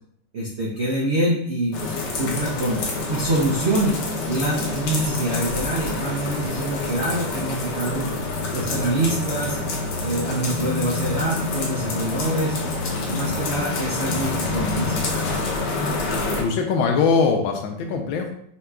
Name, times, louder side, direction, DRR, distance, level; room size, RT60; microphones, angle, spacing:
voice 1, 0.3-2.8 3.1-9.6 10.0-12.6 13.1-15.2, right 1 dB, 75° right, -5 dB, 0.6 m, -25 dB
sound 1, 1.7-16.4, left 3 dB, 70° left, 1.4 m, -27 dB
voice 2, 16.4-18.3, left 5 dB, 90° left, 4 dB, 1.4 m, -21 dB
5.6 x 2.8 x 2.3 m, 0.69 s
omnidirectional pair, 2.1 m